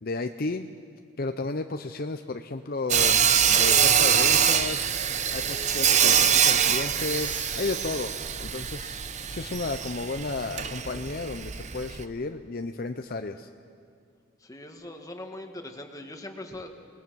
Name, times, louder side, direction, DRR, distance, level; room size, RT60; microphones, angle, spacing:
voice 1, 0.0-0.7 1.2-4.9 5.3-9.0 9.3-13.5, left 3 dB, 45° left, 7 dB, 0.6 m, -33 dB
Sawing, 2.9-12.0, right 8 dB, 35° right, 0.8 m, -24 dB
sound 1, 7.0-8.4, equal, 10° right, 2.6 m, -43 dB
voice 2, 14.4-16.7, left 1 dB, 15° left, 5 dB, 1.6 m, -41 dB
28.5 x 20.0 x 6.2 m, 2.2 s
head